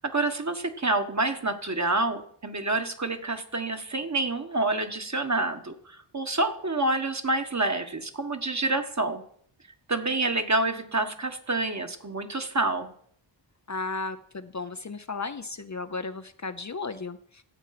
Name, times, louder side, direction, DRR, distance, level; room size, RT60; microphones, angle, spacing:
voice 1, 0.0-9.2 9.9-12.9, right 2 dB, 35° right, 6 dB, 1.5 m, -28 dB
voice 2, 13.7-17.4, left 3 dB, 35° left, 10 dB, 0.7 m, -35 dB
12.5 x 8.2 x 5.9 m, 0.64 s
wide cardioid pair, 65°, 47 cm